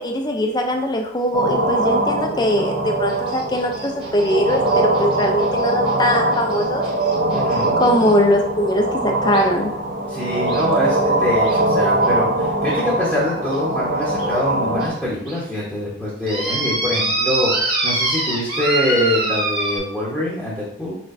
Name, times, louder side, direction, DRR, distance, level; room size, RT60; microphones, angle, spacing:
voice 1, 0.0-6.8 7.8-9.7, equal, 20° left, 3 dB, 0.5 m, -21 dB
sound 1, 1.3-14.9, right 2 dB, 50° right, 1.0 m, -21 dB
sound 2, 3.1-8.1 9.3-9.4 10.5-10.6 11.4-11.6 12.0-12.1 12.7-12.8 13.5-13.6 14.2-14.3 14.8-14.9 15.3-15.4 16.3-19.8, right 2 dB, 25° right, 1.3 m, -25 dB
voice 2, 7.3-7.7 10.1-21.0, left 1 dB, 5° right, -7 dB, 1.0 m, -24 dB
4.5 x 4.4 x 2.6 m, 0.72 s
head